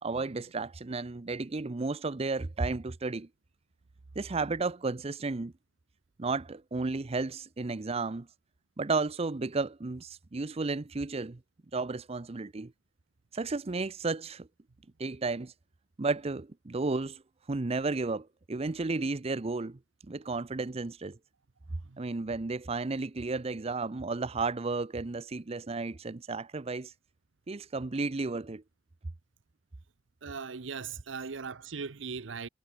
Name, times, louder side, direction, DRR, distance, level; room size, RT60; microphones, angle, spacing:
voice 1, 0.0-3.3 4.2-5.5 6.2-8.3 8.8-11.4 11.7-12.7 13.3-14.5 15.0-15.5 16.0-17.2 17.5-19.8 20.1-21.2 22.0-26.9 27.5-28.6, right 3 dB, 30° right, 0.6 m, -33 dB
voice 2, 30.2-32.5, right 5 dB, 75° right, 0.8 m, -39 dB
head